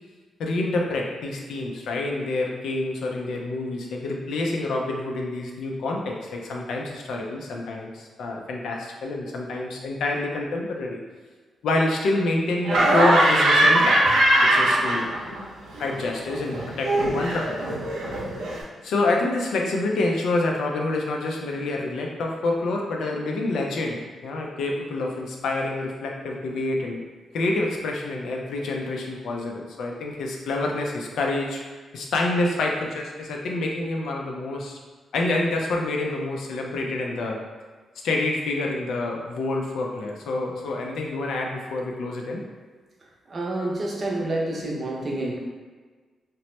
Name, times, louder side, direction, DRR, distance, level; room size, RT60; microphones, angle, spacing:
voice 1, 0.4-11.0 11.6-14.0 14.4-15.1 15.8-17.6 18.8-27.0 27.3-31.6 31.9-34.8 35.1-37.4 38.0-42.4, left 2 dB, 80° left, 0 dB, 0.4 m, -27 dB
Laughter, 12.6-15.4 15.7-18.6, right 1 dB, 90° right, 0.6 m, -21 dB
voice 2, 43.3-45.4, right 2 dB, 45° right, -2 dB, 0.6 m, -28 dB
2.9 x 2.0 x 3.1 m, 1.4 s
cardioid pair, 85°, 0 cm